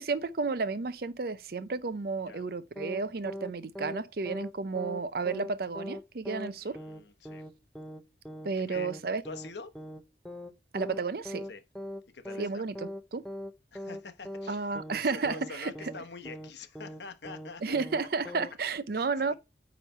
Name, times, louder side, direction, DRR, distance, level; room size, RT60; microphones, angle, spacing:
voice 1, 0.0-6.8 8.4-9.2 10.7-11.5 12.4-12.7 13.1-13.3 14.5-15.7 17.6-19.3, right 4 dB, 60° right, 0.5 m, -32 dB
sound 1, 2.8-3.0 3.3-3.5 3.8-4.0 4.3-4.5 4.8-5.0 5.3-5.5 5.8-6.0 6.3-6.5 6.8-7.0 7.3-7.5 7.8-8.0 8.3-8.5 8.8-9.0 9.3-9.5 9.8-10.0 10.3-10.5 10.8-11.0 11.3-11.5 11.8-12.0 12.3-12.5 12.8-13.0 13.3-13.5 13.8-14.0 14.3-14.5 14.8-15.0 15.3-15.5 15.8-16.0 16.3-16.5 16.8-17.0 17.3-17.5 17.8-18.0 18.3-18.5, left 1 dB, 5° left, 0.6 m, -40 dB
voice 2, 6.6-7.4 8.6-8.9 9.2-9.7 11.5-11.6 12.1-12.7 13.7-17.8 18.2-18.3 18.9-19.3, left 4 dB, 75° left, 1.0 m, -46 dB
9.1 x 3.2 x 5.4 m
head